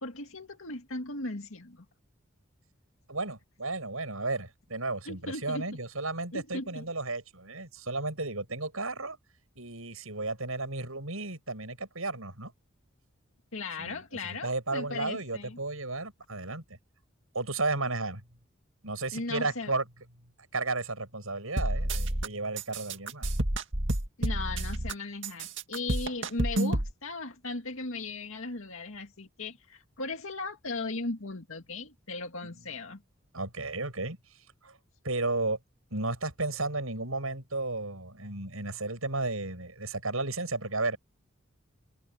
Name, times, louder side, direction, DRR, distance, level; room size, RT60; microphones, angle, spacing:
voice 1, 0.0-1.9 5.1-5.6 6.3-6.8 13.5-15.6 19.1-19.7 24.2-33.0, left 3 dB, 75° left, 2.1 m, -37 dB
voice 2, 3.1-9.2 9.6-12.5 13.8-16.6 17.3-18.2 18.8-19.9 20.5-23.3 32.4-32.6 33.3-34.2 34.6-34.8 35.0-35.6 35.9-41.0, right 3 dB, 80° right, 8.0 m, -33 dB
sound 1, 21.6-22.3 22.6-24.9 25.2-26.9, right 1 dB, 60° right, 2.2 m, -29 dB
head